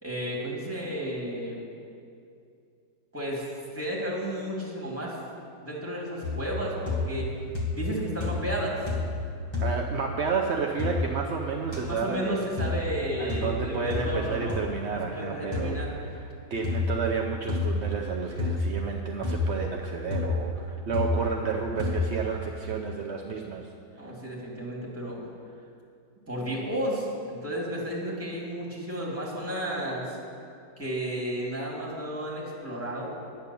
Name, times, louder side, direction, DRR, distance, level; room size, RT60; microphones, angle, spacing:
voice 1, 0.0-1.6 3.1-3.5 3.7-5.2 5.6-7.3 7.7-8.8 11.8-14.6 14.9-15.9 24.0-25.2 26.3-30.2 30.8-33.2, equal, 5° right, -4 dB, 2.4 m, -33 dB
sound 1, 6.2-6.6 6.9-7.3 7.5-7.9 8.2-8.6 8.9-9.2 9.5-9.7 10.8-11.0 11.7-11.8 12.6-12.8 13.3-13.5 13.9-14.1 14.5-14.6 15.5-15.7 16.6-16.9 17.5-17.8 18.4-18.7 19.2-19.5 20.1-20.4 20.9-21.2 21.8-22.0, left 3 dB, 15° left, 1.8 m, -28 dB
voice 2, 9.6-12.5 13.2-23.7 24.0-24.1, right 5 dB, 60° right, 1 dB, 0.7 m, -31 dB
10.5 x 9.4 x 6.9 m, 2.5 s
omnidirectional pair, 2.0 m